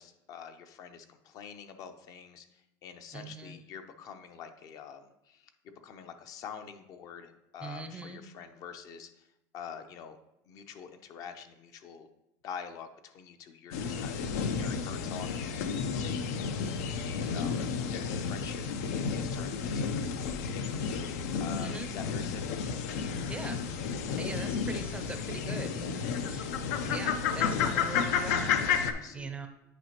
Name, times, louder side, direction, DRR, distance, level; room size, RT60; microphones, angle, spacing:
voice 1, 0.0-9.3 9.5-10.2 10.5-12.1 12.4-18.7 19.1-22.5 24.0-24.2 28.9-29.3, left 7 dB, 45° left, 8 dB, 0.6 m, -46 dB
voice 2, 3.1-3.6 7.6-8.2 17.2-17.6 21.5-21.9 23.3-23.6 24.2-26.5 26.8-28.6 29.1-29.5, right 4 dB, 15° right, 7 dB, 0.5 m, -41 dB
sound 1, 13.7-28.9, left 6 dB, 85° left, 0.6 m, -32 dB
9.1 x 5.0 x 2.9 m, 0.87 s
supercardioid pair, 145°, 8 cm